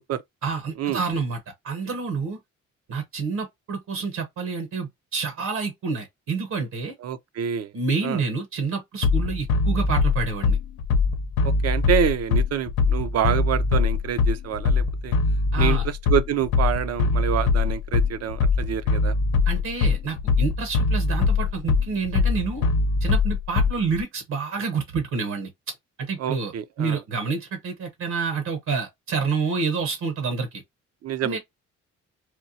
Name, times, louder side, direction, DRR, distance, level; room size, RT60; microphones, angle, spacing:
voice 1, 0.4-1.4 1.6-2.4 2.9-6.9 7.7-10.6 15.5-15.8 19.5-22.7 23.0-25.5 26.0-26.5 26.8-30.6 31.2-31.4, right 5 dB, 70° right, 1.1 m, -28 dB
voice 2, 7.0-7.7 8.0-8.2 11.4-15.2 15.6-19.1 26.2-27.0 31.0-31.4, right 9 dB, 55° right, 0.6 m, -27 dB
Bass drum, 9.0-24.0, left 4 dB, 90° left, 0.7 m, -22 dB
4.3 x 2.3 x 2.7 m
cardioid pair, 90°, 30 cm